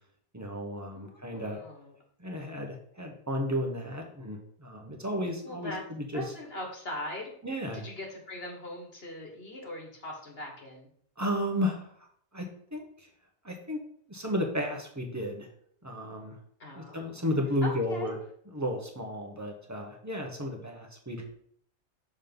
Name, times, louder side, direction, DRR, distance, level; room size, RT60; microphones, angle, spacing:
voice 1, 0.3-1.6 2.2-6.3 7.4-7.8 11.2-11.8 12.3-12.5 12.7-12.9 13.4-13.8 14.1-15.5 15.8-16.4 16.7-18.1 18.5-21.3, left 1 dB, 15° right, 1 dB, 1.1 m, -33 dB
voice 2, 0.9-2.0 5.4-5.8 6.1-7.3 7.7-10.9 16.6-17.2 17.6-18.2, left 1 dB, 60° left, 0 dB, 1.6 m, -40 dB
6.3 x 3.9 x 5.3 m, 0.63 s
omnidirectional pair, 1.1 m